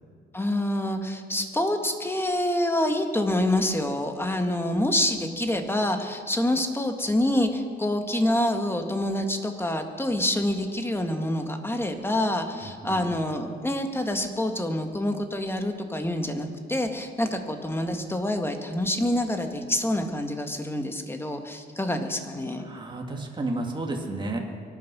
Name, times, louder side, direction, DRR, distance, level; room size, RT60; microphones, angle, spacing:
voice 1, 0.3-22.7, left 1 dB, 10° left, 5 dB, 1.8 m, -27 dB
voice 2, 12.5-13.0 22.6-24.4, right 2 dB, 25° right, 1 dB, 2.4 m, -32 dB
24.0 x 9.3 x 6.2 m, 2.2 s
cardioid pair, 90°, 20 cm